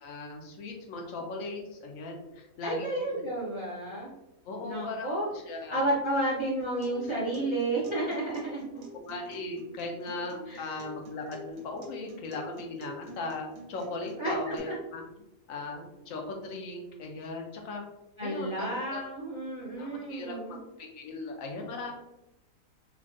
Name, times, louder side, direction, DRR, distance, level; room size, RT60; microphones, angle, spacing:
voice 1, 0.0-2.9 4.4-5.1 5.3-5.8 8.9-15.0 15.5-17.8 18.2-19.0 19.8-21.9, left 3 dB, 70° left, 2 dB, 0.9 m, -38 dB
voice 2, 2.6-4.1 4.6-5.3 5.7-8.9 10.5-10.8 14.2-14.5 18.2-20.6, right 1 dB, 35° right, -6 dB, 0.5 m, -31 dB
Acoustic guitar, 6.6-14.6, equal, 75° right, 1.1 m, -47 dB
3.4 x 2.3 x 2.5 m, 0.92 s
omnidirectional pair, 1.5 m